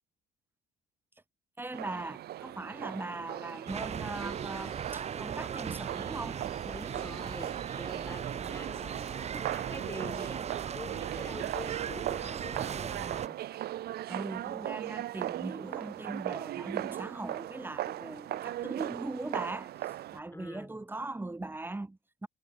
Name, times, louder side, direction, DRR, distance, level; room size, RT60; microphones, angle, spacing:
voice 1, 1.6-6.5 14.1-22.3, right 2 dB, 10° right, 5.8 m, -40 dB
sound 1, 1.7-20.2, right 13 dB, 70° right, 3.4 m, -39 dB
sound 2, 3.7-13.3, right 7 dB, 40° right, 1.8 m, -38 dB
voice 2, 6.7-10.5 10.7-13.4 20.3-20.8, left 2 dB, 15° left, 2.1 m, -46 dB
cardioid pair, 110°, 17 cm